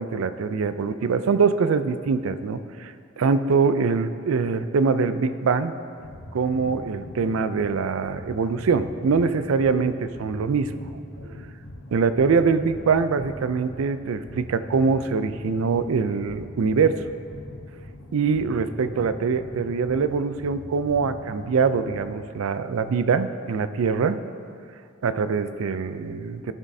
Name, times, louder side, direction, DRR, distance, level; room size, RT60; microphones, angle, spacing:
voice 1, 0.0-5.7 6.3-10.7 11.2-11.3 11.9-17.0 18.1-24.2 25.0-26.5, right 5 dB, 85° right, 12 dB, 0.4 m, -23 dB
sound 1, 6.0-22.4, left 1 dB, 75° left, 0.9 m, -41 dB
14.5 x 6.2 x 2.7 m, 2.4 s
head